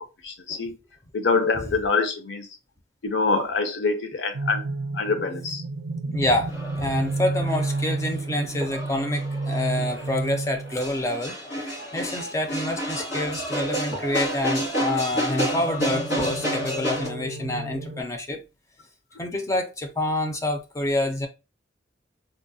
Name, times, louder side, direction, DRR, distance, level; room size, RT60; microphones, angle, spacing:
voice 1, 0.2-0.8 1.1-2.5 3.0-4.6 4.9-5.6, left 4 dB, 65° left, 0.6 m, -25 dB
sound 1, 4.3-11.0 15.2-18.0, right 2 dB, 75° right, 0.3 m, -31 dB
voice 2, 6.0-18.4 19.2-21.3, left 1 dB, 15° left, 0.4 m, -27 dB
sound 2, 6.5-17.1, equal, 85° left, 1.8 m, -30 dB
3.7 x 2.1 x 2.6 m
head